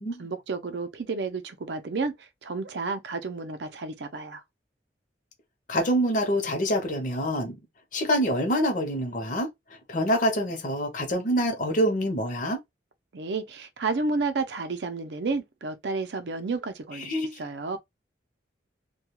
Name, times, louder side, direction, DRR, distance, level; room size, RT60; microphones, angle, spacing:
voice 1, 0.2-4.4 13.1-17.8, right 3 dB, 65° right, 0.5 m, -31 dB
voice 2, 5.7-7.6 7.9-9.5 9.9-12.6 17.0-17.4, equal, 45° left, 0.7 m, -26 dB
2.2 x 2.2 x 2.9 m
head